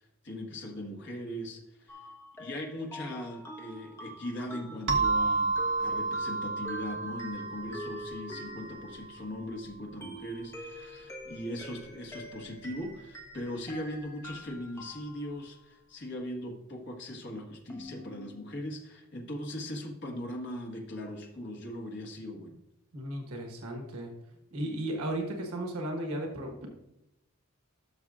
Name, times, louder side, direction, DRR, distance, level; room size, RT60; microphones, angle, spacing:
voice 1, 0.2-2.0 2.4-22.6, left 1 dB, 55° left, 1 dB, 1.5 m, -39 dB
sound 1, 1.9-9.4 10.0-15.7 17.7-18.5, left 1 dB, 10° left, 1.0 m, -46 dB
sound 2, 4.9-9.3, right 3 dB, 60° right, 0.9 m, -31 dB
voice 2, 22.9-24.1 24.5-26.7, right 1 dB, 85° right, 2 dB, 1.3 m, -35 dB
12.5 x 6.2 x 2.4 m, 0.88 s
head